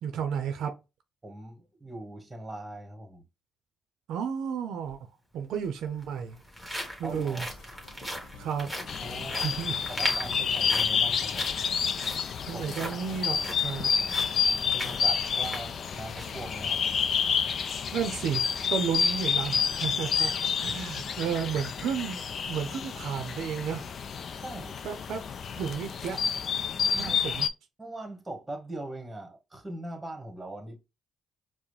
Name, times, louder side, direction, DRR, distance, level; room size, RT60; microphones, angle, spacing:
voice 1, 0.0-0.7 4.1-5.0 5.3-6.4 7.0-7.5 8.4-8.7 9.4-9.8 12.5-13.9 17.9-23.8 24.8-25.2 25.6-26.2 26.9-27.5, right 7 dB, 80° right, 0.5 m, -32 dB
voice 2, 1.2-3.2 7.0-7.5 9.0-9.6 9.9-11.4 12.5-12.8 14.7-16.8 24.3-24.8 27.0-27.4 27.8-30.8, right 1 dB, 15° right, 1.3 m, -41 dB
sound 1, 4.8-4.9 5.9-16.4 16.8-16.9 17.5-17.7, equal, ahead, 1.5 m, -40 dB
sound 2, 7.1-17.1, left 6 dB, 85° left, 0.9 m, -52 dB
forestbirds may morning, 8.9-27.5, left 6 dB, 55° left, 0.3 m, -29 dB
4.7 x 2.1 x 3.2 m
cardioid pair, 90°, 0 cm